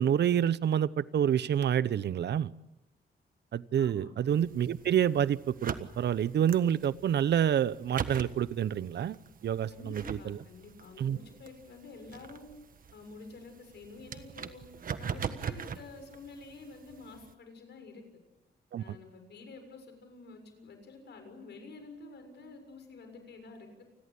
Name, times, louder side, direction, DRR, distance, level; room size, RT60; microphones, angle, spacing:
voice 1, 0.0-2.5 3.5-10.4 11.0-11.2 18.7-19.0, right 9 dB, 75° right, 17 dB, 0.8 m, -28 dB
voice 2, 3.8-4.1 9.7-12.5 12.9-14.6 15.0-18.0 18.8-23.8, left 3 dB, 80° left, 6 dB, 6.9 m, -49 dB
sound 1, 4.3-17.3, right 7 dB, 55° right, 1.5 m, -42 dB
29.0 x 21.0 x 8.5 m, 0.95 s
wide cardioid pair, 160°, 18 cm